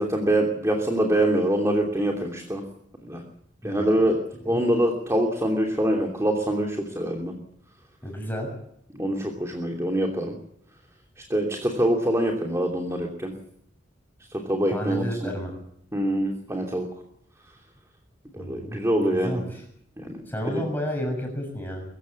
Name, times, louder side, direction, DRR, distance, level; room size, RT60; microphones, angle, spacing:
voice 1, 0.0-2.6 3.0-3.2 3.6-4.2 4.4-7.3 8.9-10.3 11.2-13.3 14.3-15.3 15.9-16.9 18.3-19.4 20.0-20.2 20.5-20.6, right 1 dB, 15° right, 1 dB, 2.9 m, -24 dB
voice 2, 3.6-4.0 4.4-4.6 8.0-8.5 14.7-15.5 18.4-19.6 20.3-21.8, equal, 10° left, 1 dB, 6.7 m, -31 dB
22.5 x 15.5 x 8.5 m, 0.73 s
head